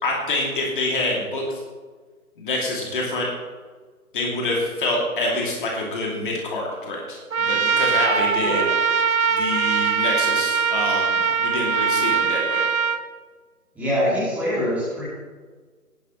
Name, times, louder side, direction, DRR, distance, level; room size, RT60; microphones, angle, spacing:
voice 1, 0.0-1.4 2.4-3.3 4.1-8.7 9.4-12.6, left 2 dB, 35° left, -2 dB, 2.7 m, -26 dB
Trumpet, 7.3-13.0, right 6 dB, 65° right, 1.0 m, -21 dB
voice 2, 13.7-15.0, equal, 5° right, -10 dB, 2.8 m, -24 dB
18.0 x 11.0 x 3.1 m, 1.4 s
figure-of-eight pair, 150°, 45 cm